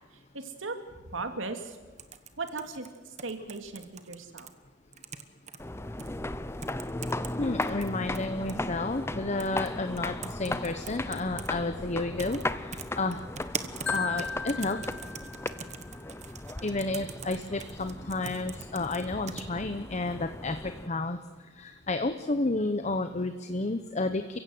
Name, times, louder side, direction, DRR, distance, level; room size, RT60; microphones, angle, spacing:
voice 1, 0.3-1.8 2.4-4.5, right 3 dB, 85° right, 6 dB, 2.6 m, -37 dB
sound 1, 2.0-4.5 4.9-5.6 6.0-6.1 6.6-7.3 7.6-8.6 9.4-9.7 10.0-11.5 12.2-12.4 12.7-19.4, right 6 dB, 35° right, 1.2 m, -42 dB
sound 2, 5.6-20.9, left 2 dB, 15° left, 0.7 m, -37 dB
voice 2, 7.4-13.2 13.9-14.8 16.6-21.2 21.5-24.4, left 2 dB, 35° left, 8 dB, 0.9 m, -31 dB
Marimba xylophone, 13.9-15.9, left 5 dB, 70° left, 1.5 m, -36 dB
29.5 x 16.0 x 7.9 m, 1.3 s
head